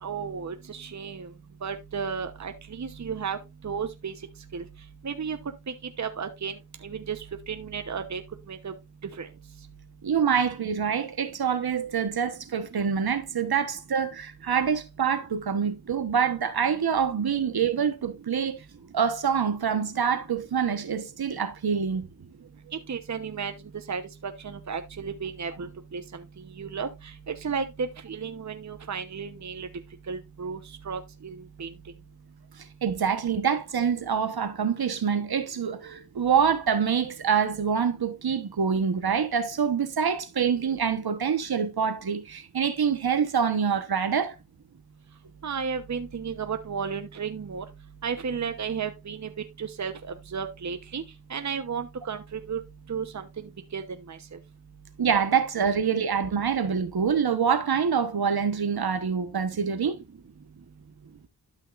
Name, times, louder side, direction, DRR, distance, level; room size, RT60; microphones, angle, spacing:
voice 1, 0.0-1.3 1.6-3.4 3.6-4.1 4.5-4.6 5.0-5.4 6.0-6.5 6.8-8.2 8.5-8.7 9.2-9.3 22.7-23.5 23.9-26.2 26.6-29.7 30.1-30.6 30.9-31.7 45.4-47.6 48.0-49.3 49.6-51.0 51.3-52.6 52.9-54.4, right 6 dB, 40° right, 1.0 m, -33 dB
voice 2, 10.0-18.6 18.9-22.1 32.8-44.3 55.0-60.0, right 7 dB, 55° right, 1.2 m, -26 dB
12.5 x 5.7 x 2.5 m
cardioid pair, 65°, 44 cm